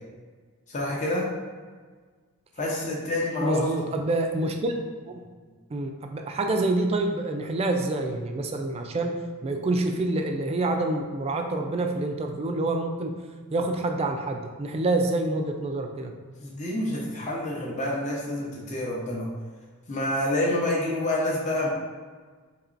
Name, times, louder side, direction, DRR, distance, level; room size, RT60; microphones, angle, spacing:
voice 1, 0.7-1.3 2.6-3.7 16.4-19.3 19.9-21.7, left 1 dB, 35° left, -3 dB, 0.7 m, -28 dB
voice 2, 3.4-4.7 5.1-5.2 5.7-13.1 13.5-16.1, right 2 dB, 25° right, 4 dB, 0.3 m, -27 dB
4.4 x 2.9 x 2.5 m, 1.5 s
head